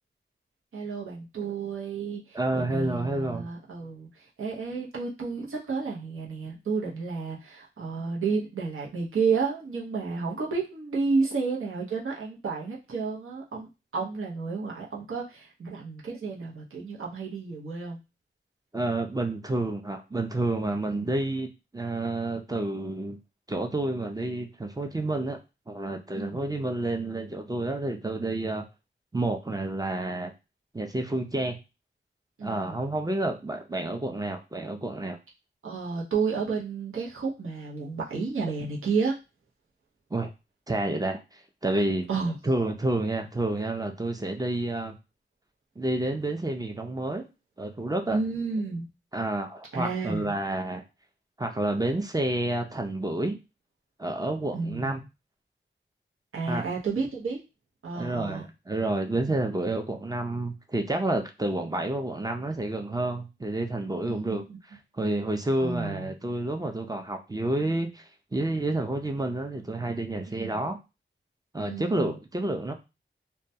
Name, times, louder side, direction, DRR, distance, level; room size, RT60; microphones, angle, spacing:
voice 1, 0.7-18.0 21.0-21.1 26.1-26.4 32.4-32.9 35.6-39.2 42.1-42.4 48.1-48.9 49.7-50.4 54.5-55.0 56.3-57.4 57.8-58.4 64.0-64.6 65.6-66.1 70.3-70.6 71.6-72.2, right 4 dB, 85° right, -3 dB, 0.7 m, -31 dB
voice 2, 2.3-3.4 18.7-23.2 23.5-25.4 25.7-28.6 29.1-30.3 30.7-31.6 32.4-35.2 40.1-40.3 40.7-42.1 42.4-44.9 45.8-47.3 47.6-48.2 49.1-50.8 51.4-53.4 54.0-55.0 56.5-56.6 57.9-64.4 64.9-68.0 68.3-70.8 71.5-72.7, right 2 dB, 20° right, 4 dB, 0.4 m, -29 dB
2.2 x 2.1 x 2.7 m, 0.27 s
cardioid pair, 50°, 21 cm